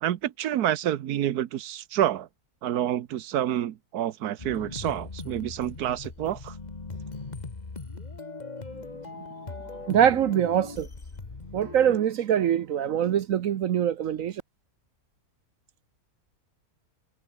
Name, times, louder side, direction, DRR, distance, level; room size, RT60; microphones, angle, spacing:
voice 1, 0.0-2.3 2.6-6.5, right 11 dB, 90° right, 1.4 m, -28 dB
sound 1, 4.4-12.0, left 3 dB, 30° left, 1.7 m, -40 dB
voice 2, 9.9-10.9 11.5-14.4, right 9 dB, 65° right, 1.1 m, -23 dB
omnidirectional pair, 1.6 m